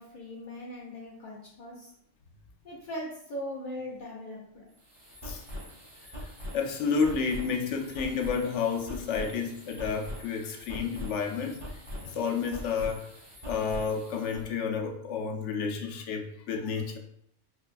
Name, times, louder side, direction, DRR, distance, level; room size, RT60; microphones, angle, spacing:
voice 1, 0.0-1.9 2.6-4.7, equal, 55° left, -4 dB, 0.7 m, -40 dB
sound 1, 4.7-14.5, equal, 30° right, 0.8 m, -43 dB
voice 2, 6.5-11.6 12.0-13.0 13.5-17.0, left 5 dB, 85° left, 2 dB, 0.9 m, -30 dB
4.6 x 2.2 x 2.4 m, 0.73 s
omnidirectional pair, 1.2 m